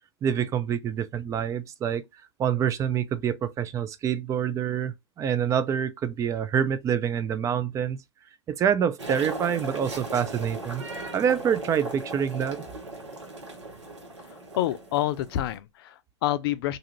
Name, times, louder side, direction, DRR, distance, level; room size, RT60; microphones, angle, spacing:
voice 1, 0.2-2.0 2.4-8.0 8.5-10.8 11.1-12.6, right 8 dB, 20° right, 0.4 m, -26 dB
sound 1, 9.0-15.6, right 2 dB, 85° right, 1.1 m, -38 dB
voice 2, 14.2-16.8, left 13 dB, 55° left, 0.4 m, -28 dB
2.6 x 2.4 x 3.0 m
hypercardioid pair, 105°, 15 cm